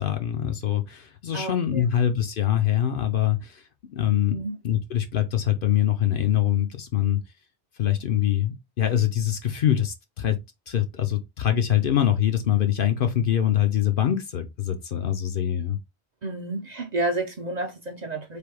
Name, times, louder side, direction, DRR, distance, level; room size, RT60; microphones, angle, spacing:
voice 1, 0.0-3.6 3.9-4.4 4.6-7.2 7.8-10.4 10.7-15.8, left 11 dB, 60° left, 0.7 m, -24 dB
voice 2, 1.3-1.8 4.3-4.6 16.2-18.4, right 2 dB, 45° right, 0.7 m, -30 dB
3.4 x 2.7 x 4.6 m
omnidirectional pair, 1.1 m